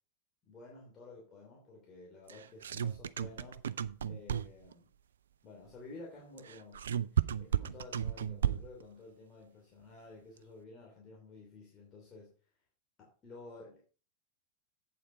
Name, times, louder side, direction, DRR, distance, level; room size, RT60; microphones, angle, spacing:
voice 1, 0.4-3.7 4.1-4.9 5.4-12.3 13.0-13.9, left 3 dB, 25° left, 2.9 m, -52 dB
sound 1, 2.3-4.7 6.4-8.8, right 9 dB, 65° right, 0.4 m, -33 dB
8.4 x 7.2 x 5.0 m
figure-of-eight pair, 90°, 0 cm